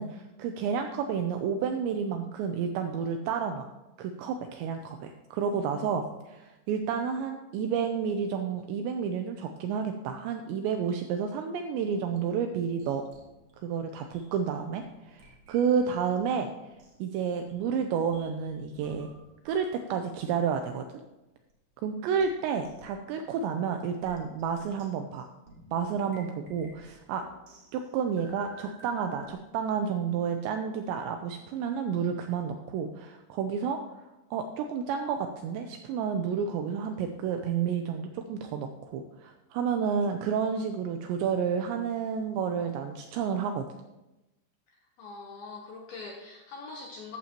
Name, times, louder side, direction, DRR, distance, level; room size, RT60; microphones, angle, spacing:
voice 1, 0.0-3.7 4.0-13.1 13.6-16.5 17.0-19.1 19.5-20.9 21.8-25.3 25.7-27.2 27.7-33.8 34.3-43.6, right 7 dB, 85° right, 6 dB, 2.6 m, -30 dB
sound 1, 11.7-16.2 16.5-19.8 20.1-20.2 20.6-20.7 21.5-21.6 22.2-22.3 22.6-23.0 24.0-29.3, right 2 dB, 50° right, 1.7 m, -54 dB
voice 2, 44.7-47.2, left 3 dB, 75° left, 0 dB, 2.3 m, -43 dB
14.0 x 11.5 x 3.0 m, 1.0 s
omnidirectional pair, 5.8 m